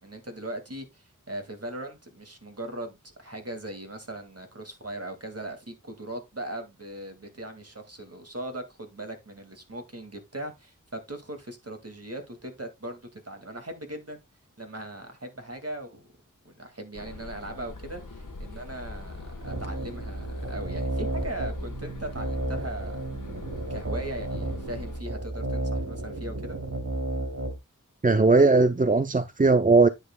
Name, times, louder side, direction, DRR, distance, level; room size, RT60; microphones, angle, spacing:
voice 1, 0.0-14.2 14.6-16.1 16.4-23.0 23.5-26.6, right 1 dB, 50° right, 2.1 m, -39 dB
sound 1, 16.9-25.0, left 2 dB, 75° left, 1.3 m, -42 dB
sound 2, 19.4-27.6, right 2 dB, 70° right, 3.0 m, -33 dB
voice 2, 28.0-29.9, right 3 dB, 25° right, 0.5 m, -19 dB
9.8 x 8.7 x 2.2 m
wide cardioid pair, 45°, 32 cm